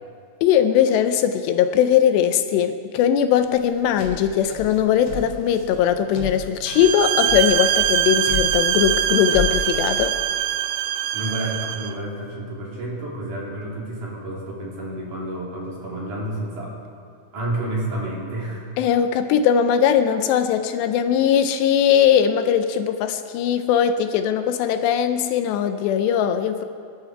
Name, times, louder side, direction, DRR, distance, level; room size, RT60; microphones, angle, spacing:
voice 1, 0.4-10.2 18.8-26.7, left 9 dB, 80° left, 8 dB, 2.8 m, -20 dB
sound 1, 3.4-10.4, left 4 dB, 35° left, 2.9 m, -33 dB
sound 2, 6.7-11.9, right 12 dB, 80° right, 2.5 m, -23 dB
voice 2, 11.1-16.7 17.3-18.6, right 1 dB, 50° right, -4 dB, 4.1 m, -30 dB
26.5 x 11.0 x 4.7 m, 2.3 s
omnidirectional pair, 5.1 m